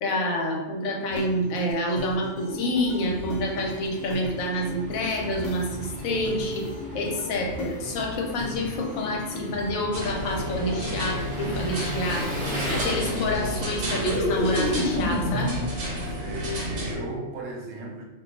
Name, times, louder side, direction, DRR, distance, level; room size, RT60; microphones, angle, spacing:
voice 1, 0.0-6.7 6.9-12.3 12.7-15.6, left 1 dB, 85° left, 1 dB, 1.0 m, -28 dB
sound 1, 1.1-9.8 10.2-15.5, left 1 dB, 65° left, 0.7 m, -34 dB
Engine, 2.4-15.8, equal, 10° right, 0.4 m, -37 dB
sound 2, 9.9-17.0, equal, 50° right, 0.8 m, -32 dB
voice 2, 16.0-18.0, right 1 dB, 75° right, 1 dB, 0.9 m, -35 dB
2.3 x 2.3 x 3.9 m, 1.1 s
omnidirectional pair, 1.4 m